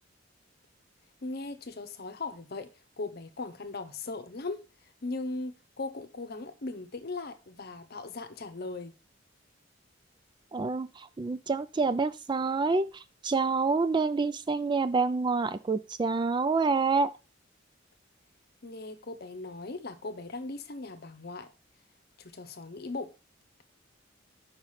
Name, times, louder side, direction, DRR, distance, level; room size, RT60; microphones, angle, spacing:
voice 1, 1.2-2.7 3.0-4.6 5.0-8.9 18.6-21.5 22.2-23.1, left 3 dB, 55° left, 0.8 m, -38 dB
voice 2, 10.5-17.1, right 4 dB, 25° right, 0.3 m, -27 dB
5.1 x 4.9 x 5.6 m
head